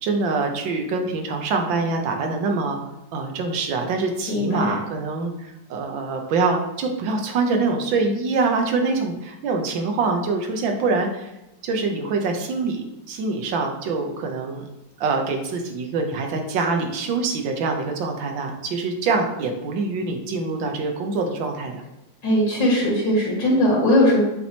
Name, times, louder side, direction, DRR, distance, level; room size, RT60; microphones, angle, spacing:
voice 1, 0.0-2.8 3.1-11.3 11.6-14.7 15.0-21.8, right 3 dB, 90° right, 4 dB, 1.6 m, -25 dB
voice 2, 4.3-4.8 22.2-24.2, left 1 dB, 75° left, -5 dB, 2.5 m, -19 dB
7.5 x 4.3 x 2.9 m, 0.95 s
omnidirectional pair, 2.0 m